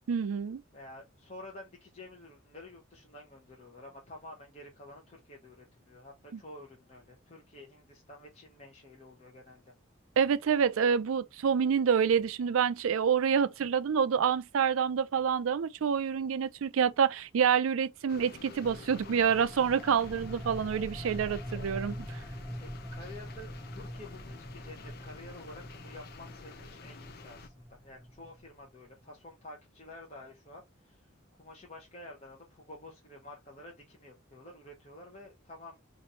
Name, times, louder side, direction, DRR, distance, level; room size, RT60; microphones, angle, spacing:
voice 1, 0.1-0.6 6.3-6.4 10.2-21.9, right 7 dB, 80° right, 0.4 m, -27 dB
voice 2, 0.7-9.6 21.2-21.7 22.5-31.0 31.4-35.8, left 1 dB, 30° left, 0.9 m, -50 dB
sound 1, 18.1-27.5, left 4 dB, 50° left, 0.5 m, -50 dB
sound 2, 18.6-28.8, equal, ahead, 0.5 m, -44 dB
3.1 x 2.6 x 4.1 m
head